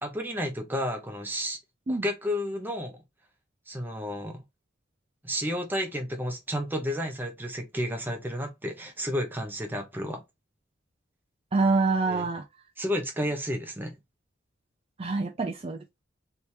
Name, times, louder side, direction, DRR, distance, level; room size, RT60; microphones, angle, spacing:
voice 1, 0.0-1.6 1.9-3.0 3.7-4.4 5.2-10.2 12.1-12.3 12.8-14.0, equal, 10° right, 1.0 m, -31 dB
voice 2, 11.5-12.4 15.0-15.8, right 3 dB, 30° right, 0.5 m, -25 dB
3.5 x 3.0 x 2.7 m
head